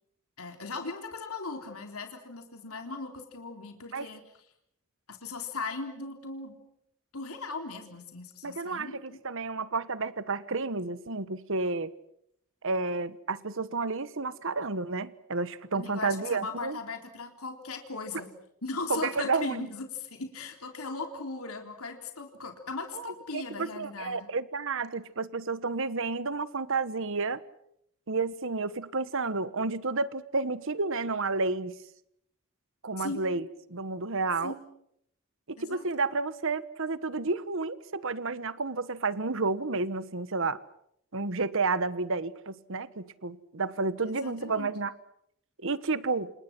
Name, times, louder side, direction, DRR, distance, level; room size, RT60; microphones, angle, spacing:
voice 1, 0.4-4.2 5.1-6.6 7.1-9.2 15.7-18.3 18.6-24.3 33.0-33.3 34.4-34.6 35.6-35.9 44.0-44.7, left 3 dB, 85° left, 4 dB, 3.8 m, -38 dB
voice 2, 8.4-11.9 12.6-16.8 18.9-19.7 22.9-27.4 28.1-31.8 32.8-33.4 33.7-34.5 35.5-40.6 41.1-44.9 45.6-46.3, right 3 dB, 65° right, 15 dB, 1.3 m, -31 dB
28.5 x 28.5 x 6.1 m, 0.74 s
head